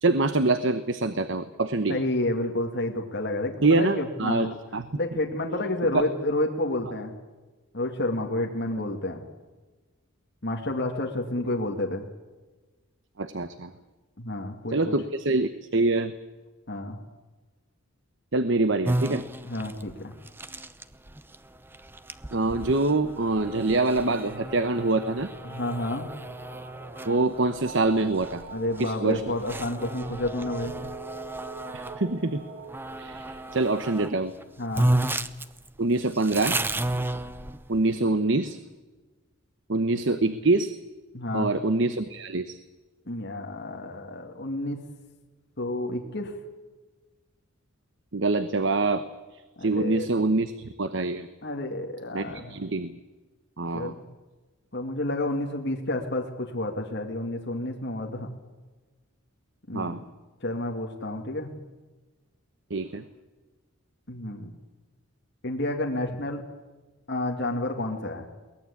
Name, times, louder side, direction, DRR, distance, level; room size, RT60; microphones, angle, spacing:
voice 1, 0.0-2.0 3.6-4.9 5.9-6.0 13.2-13.7 14.7-16.1 18.3-19.2 22.3-25.3 27.1-28.4 28.8-29.2 31.7-32.5 33.0-34.3 35.8-36.6 37.7-38.6 39.7-40.7 41.3-42.6 48.1-49.0 49.3-51.3 52.1-53.0 53.6-53.9 59.7-60.0 62.7-63.0, right 2 dB, 55° right, 11 dB, 1.0 m, -25 dB
voice 2, 1.9-4.6 4.9-7.2 7.7-9.2 10.4-12.1 14.2-14.9 16.7-17.0 19.4-20.1 25.4-26.1 28.5-30.7 34.6-34.9 41.1-41.5 43.1-44.8 45.6-46.4 49.6-50.1 51.4-52.6 53.7-54.0 54.7-58.3 59.7-60.0 60.4-61.5 64.1-64.5 65.4-66.4 67.1-68.3, left 1 dB, 50° left, 1 dB, 2.3 m, -30 dB
sound 1, 18.8-32.0 32.7-34.1 34.4-34.5 34.7-37.9, right 1 dB, 10° right, 0.7 m, -33 dB
sound 2, 23.5-35.3, right 3 dB, 35° right, 5.5 m, -44 dB
23.0 x 19.0 x 8.5 m, 1.2 s
head